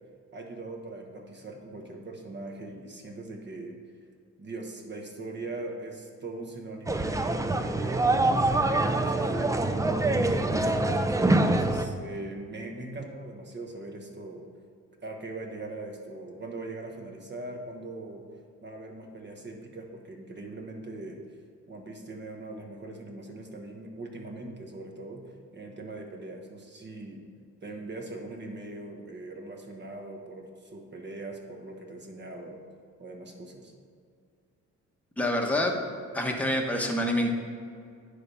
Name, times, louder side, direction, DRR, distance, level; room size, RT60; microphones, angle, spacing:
voice 1, 0.3-3.8 4.4-9.4 9.8-10.9 11.3-14.5 15.0-18.2 18.6-21.2 21.7-25.2 25.5-27.2 27.6-32.6 33.0-33.7, right 2 dB, 35° right, 2 dB, 1.3 m, -41 dB
sound 1, 6.9-11.8, right 2 dB, 10° right, 0.4 m, -25 dB
voice 2, 35.2-35.7 36.1-37.3, left 1 dB, 5° left, 1 dB, 1.1 m, -26 dB
9.8 x 3.5 x 5.4 m, 2.3 s
cardioid pair, 90°, 30 cm